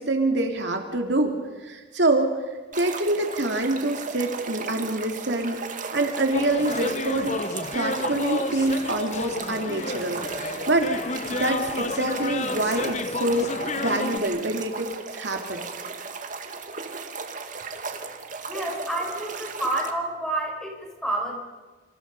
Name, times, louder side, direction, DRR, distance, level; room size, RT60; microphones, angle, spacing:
voice 1, 0.0-1.3 1.6-2.4 2.7-7.4 7.7-10.9 11.3-13.5 13.8-15.6, right 2 dB, 60° right, 3 dB, 2.9 m, -26 dB
sound 1, 2.7-19.9, right 4 dB, 40° right, 2.2 m, -36 dB
sound 2, 6.3-14.2, left 3 dB, 35° left, 1.1 m, -31 dB
voice 2, 18.4-21.4, right 1 dB, 5° left, 0 dB, 6.7 m, -29 dB
29.0 x 27.5 x 5.5 m, 1.3 s
head